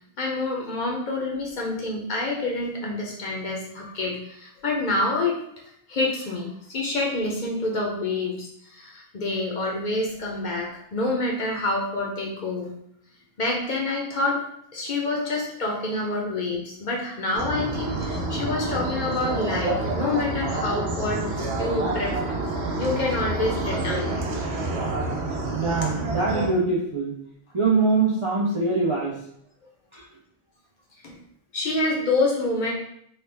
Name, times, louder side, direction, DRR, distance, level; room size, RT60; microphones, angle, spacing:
voice 1, 0.2-5.4 5.9-12.7 13.4-14.4 14.7-22.2 22.8-24.1 31.0-31.1 31.5-32.7, left 2 dB, 55° left, -2 dB, 0.6 m, -27 dB
sound 1, 17.3-26.5, right 2 dB, 85° right, 0.9 m, -28 dB
voice 2, 24.9-27.1 27.5-29.3 29.9-30.1, right 3 dB, 45° right, -5 dB, 0.4 m, -24 dB
3.2 x 2.1 x 3.2 m, 0.70 s
omnidirectional pair, 1.1 m